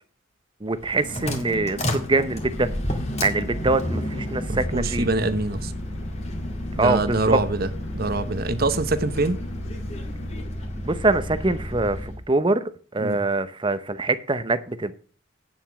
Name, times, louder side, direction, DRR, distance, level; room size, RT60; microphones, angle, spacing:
voice 1, 0.6-2.7 3.2-5.1 6.8-7.4 10.8-12.6 12.9-14.9, right 2 dB, 25° right, 0.8 m, -24 dB
sound 1, 0.7-12.2, left 1 dB, 35° left, 2.1 m, -31 dB
sound 2, 1.0-10.4, left 2 dB, 70° left, 1.3 m, -39 dB
voice 2, 4.5-5.7 6.8-7.7 7.9-9.4 13.0-13.2, right 3 dB, 55° right, 1.0 m, -24 dB
9.2 x 7.5 x 6.0 m
head